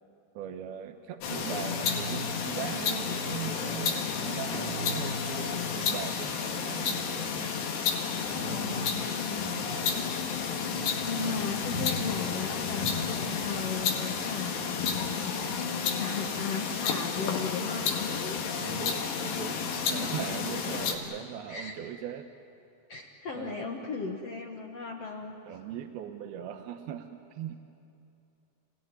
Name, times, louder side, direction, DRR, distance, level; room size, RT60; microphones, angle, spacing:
voice 1, 0.4-7.5 8.4-8.9 9.3-9.7 11.2-11.4 18.6-22.3 23.3-23.6 25.5-27.6, right 9 dB, 75° right, 5 dB, 2.8 m, -40 dB
sound 1, 1.2-21.0, left 6 dB, 90° left, 4.2 m, -31 dB
voice 2, 8.5-9.6 11.0-18.4 18.7-18.8 19.5-20.1 20.7-20.8 21.5-21.7 22.9-25.3, left 5 dB, 60° left, 1 dB, 1.7 m, -37 dB
30.0 x 17.5 x 9.7 m, 2.7 s
omnidirectional pair, 4.7 m